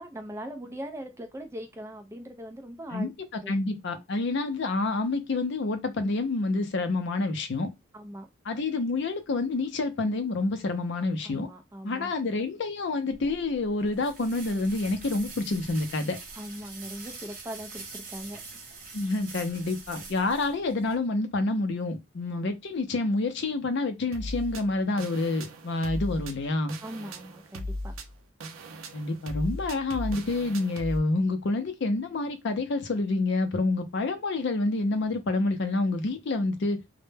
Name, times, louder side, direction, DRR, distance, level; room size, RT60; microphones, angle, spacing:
voice 1, 0.0-3.1 3.4-3.6 7.9-8.3 11.2-12.1 16.4-18.4 26.8-27.9, equal, 15° right, 0.4 m, -40 dB
voice 2, 2.9-7.7 8.5-11.5 11.8-16.2 18.9-26.7 28.9-36.8, left 2 dB, 55° left, 0.4 m, -28 dB
sound 1, 13.1-21.0, right 3 dB, 40° right, 0.7 m, -44 dB
sound 2, 24.1-31.0, left 1 dB, 75° right, 0.4 m, -37 dB
2.1 x 2.1 x 3.2 m
head